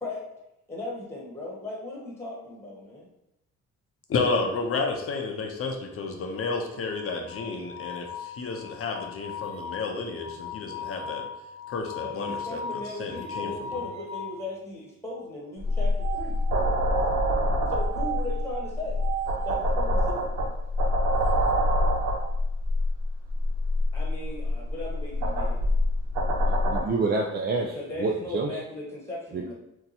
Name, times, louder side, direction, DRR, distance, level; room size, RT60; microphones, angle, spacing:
voice 1, 0.7-3.1 12.0-16.4 17.7-19.0 19.4-20.3 23.9-25.6 27.7-29.5, left 2 dB, 10° left, -3 dB, 1.1 m, -37 dB
voice 2, 4.1-11.2 11.7-13.7, left 4 dB, 50° left, 3 dB, 0.6 m, -31 dB
sound 1, 6.3-14.4 15.7-17.0 17.7-19.7 20.9-22.3, right 1 dB, 20° right, 0.9 m, -37 dB
sound 2, 15.6-26.8, left 1 dB, 85° right, 0.7 m, -25 dB
voice 3, 26.5-28.6 29.3-29.5, right 3 dB, 35° right, 0 dB, 0.4 m, -28 dB
2.8 x 2.2 x 4.0 m, 0.86 s
cardioid pair, 90°, 30 cm